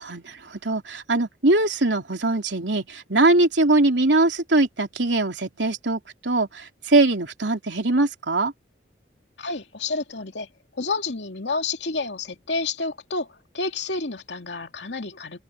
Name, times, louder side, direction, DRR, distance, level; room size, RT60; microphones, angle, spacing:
voice 1, 0.0-8.5, right 2 dB, 85° right, 3.4 m, -22 dB
voice 2, 9.4-10.5 10.7-13.3 13.5-15.4, left 3 dB, 80° left, 2.5 m, -29 dB
head